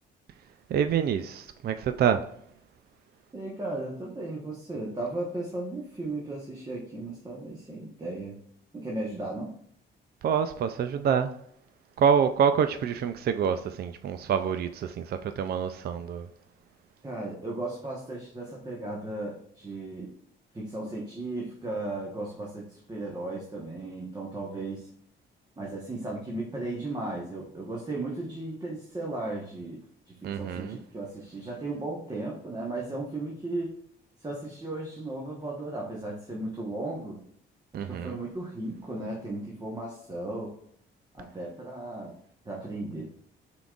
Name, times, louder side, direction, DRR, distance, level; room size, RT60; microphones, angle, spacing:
voice 1, 0.7-2.2 10.2-11.3 12.0-16.3 30.2-30.8 37.7-38.1, right 7 dB, 55° right, 0.4 m, -26 dB
voice 2, 3.3-8.4 8.7-9.5 17.0-20.1 20.5-24.9 25.6-33.8 34.2-37.2 37.7-40.6 41.1-42.2 42.4-43.1, right 2 dB, 20° right, 1.2 m, -36 dB
5.8 x 3.8 x 2.4 m
cardioid pair, 90°, 20 cm